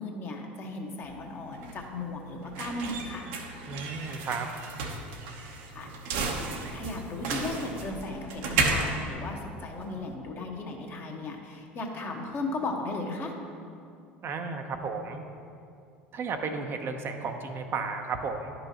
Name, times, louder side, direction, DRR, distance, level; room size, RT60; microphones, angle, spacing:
voice 1, 0.0-3.3 5.7-5.9 6.2-6.4 6.7-13.3, left 2 dB, 40° left, 0 dB, 1.2 m, -36 dB
sound 1, 1.0-10.1, right 3 dB, 70° right, 0.9 m, -33 dB
voice 2, 3.7-4.5 14.2-15.2 16.1-18.5, right 4 dB, 45° right, 5 dB, 0.7 m, -33 dB
11.0 x 5.6 x 2.9 m, 2.5 s
hypercardioid pair, 75°, 6 cm